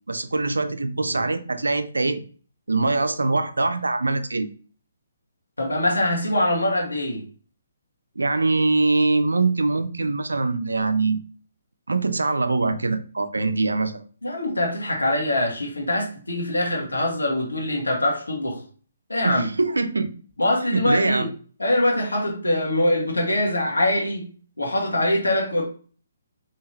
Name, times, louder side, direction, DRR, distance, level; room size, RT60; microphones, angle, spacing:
voice 1, 0.1-2.2 2.7-4.5 8.2-11.2 11.9-14.0 19.2-20.1 20.7-21.3, right 3 dB, 85° right, 0.5 m, -23 dB
voice 2, 5.6-7.2 14.2-18.6 19.1-19.5 20.4-21.3 21.6-24.2 24.6-25.6, left 1 dB, 90° left, 1.6 m, -23 dB
4.5 x 2.9 x 3.2 m
figure-of-eight pair, 140°, 0 cm